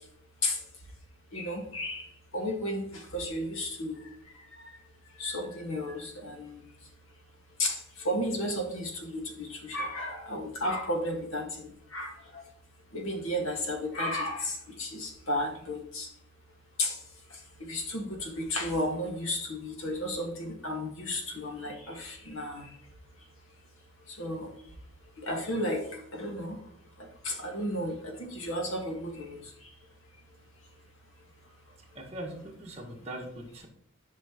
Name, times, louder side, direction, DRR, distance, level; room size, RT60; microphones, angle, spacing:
voice 1, 1.3-2.1 2.3-4.0 4.6-4.7 5.2-6.6 7.6-7.8 8.0-12.4 12.9-16.1 16.8-17.0 17.6-22.7 24.2-24.5 25.2-26.6 27.2-29.4, left 1 dB, 70° left, 2 dB, 1.8 m, -33 dB
voice 2, 31.9-33.7, right 1 dB, 30° right, -1 dB, 1.7 m, -41 dB
10.5 x 5.9 x 3.0 m, 0.67 s
head